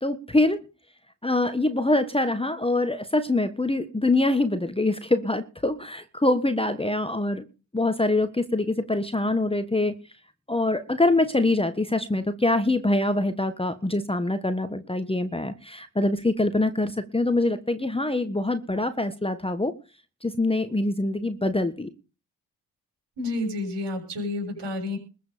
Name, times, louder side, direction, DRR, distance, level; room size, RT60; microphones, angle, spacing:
voice 1, 0.0-0.6 1.2-7.4 7.7-9.9 10.5-19.7 20.2-21.9, left 2 dB, 10° left, 10 dB, 1.5 m, -24 dB
voice 2, 23.2-25.0, left 2 dB, 55° right, 4 dB, 7.4 m, -30 dB
21.5 x 8.0 x 5.2 m, 0.34 s
hypercardioid pair, 45°, 50 cm